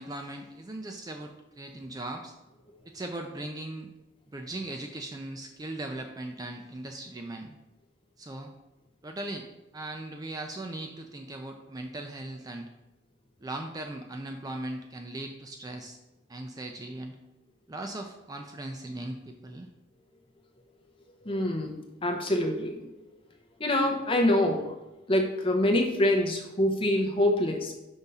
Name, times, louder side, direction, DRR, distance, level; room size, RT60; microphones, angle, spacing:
voice 1, 0.0-2.3 2.8-3.9 4.3-7.6 8.2-8.5 9.0-9.5 9.7-12.7 13.4-16.0 16.3-17.2 17.7-19.7, right 2 dB, 20° right, 4 dB, 0.3 m, -38 dB
voice 2, 21.2-21.8 22.0-22.9 23.6-24.7 25.1-27.8, left 1 dB, 25° left, 2 dB, 0.8 m, -25 dB
5.4 x 3.5 x 5.4 m, 1.0 s
head